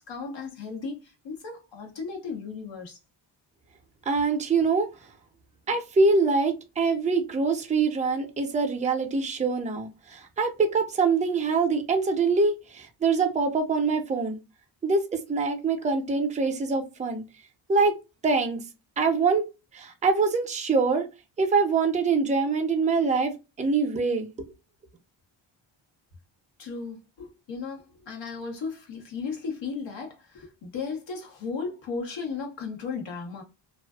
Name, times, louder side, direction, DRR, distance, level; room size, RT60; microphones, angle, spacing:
voice 1, 0.0-3.0 26.6-33.4, left 5 dB, 65° left, 1.1 m, -35 dB
voice 2, 4.1-4.9 5.7-14.4 14.8-17.2 17.7-17.9 18.2-18.6 19.0-19.5 19.7-21.1 21.4-24.3, right 4 dB, 15° right, 0.4 m, -24 dB
2.4 x 2.3 x 2.3 m
wide cardioid pair, 120°, 48 cm